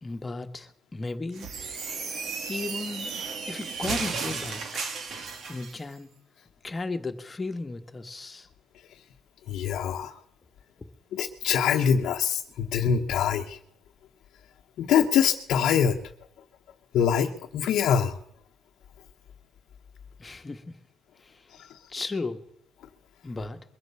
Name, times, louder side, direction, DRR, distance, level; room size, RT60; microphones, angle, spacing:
voice 1, 0.0-1.5 2.5-3.1 3.4-4.9 5.5-6.1 6.6-8.5 20.2-20.6 21.2-21.3 21.9-22.4 23.2-23.6, left 3 dB, 25° left, 7 dB, 1.4 m, -35 dB
sound 1, 1.3-5.8, right 5 dB, 65° right, 2.1 m, -34 dB
voice 2, 9.5-10.1 11.1-13.6 14.8-16.0 16.9-18.2, left 8 dB, 80° left, 1 dB, 0.9 m, -24 dB
22.0 x 8.0 x 6.9 m, 0.73 s
cardioid pair, 90°, 0 cm